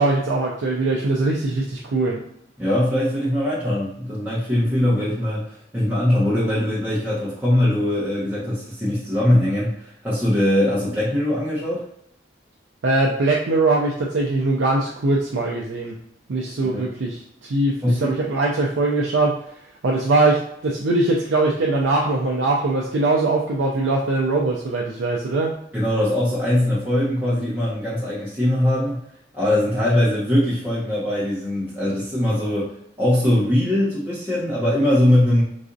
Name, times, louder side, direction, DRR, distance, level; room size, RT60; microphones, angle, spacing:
voice 1, 0.0-2.2 12.8-16.0 16.3-19.4 19.8-25.5, right 2 dB, 80° right, -2 dB, 0.5 m, -21 dB
voice 2, 2.6-11.8 16.6-16.9 17.8-18.1 25.7-29.0 29.3-32.7 33.0-35.4, left 1 dB, 10° right, -10 dB, 0.8 m, -21 dB
4.0 x 2.4 x 2.6 m, 0.73 s
head